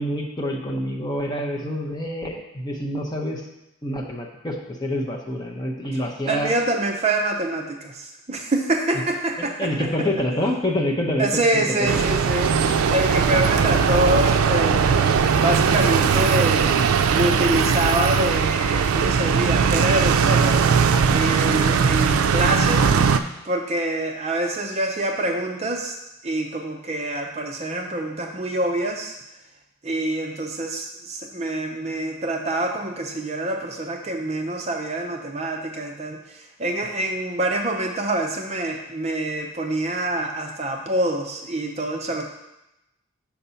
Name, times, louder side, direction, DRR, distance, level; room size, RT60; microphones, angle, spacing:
voice 1, 0.0-3.4 3.8-6.5 9.4-11.3 11.5-12.0 20.9-21.2 36.8-36.9, left 1 dB, 20° left, 0 dB, 0.7 m, -27 dB
voice 2, 6.3-9.9 11.2-15.0 15.3-16.7 17.1-20.6 21.1-22.9 23.4-26.0 26.2-29.2 29.8-42.2, right 1 dB, 30° right, 3 dB, 0.5 m, -26 dB
sound 1, 11.9-23.2, right 6 dB, 85° right, 0.4 m, -19 dB
5.9 x 4.1 x 5.6 m, 0.91 s
head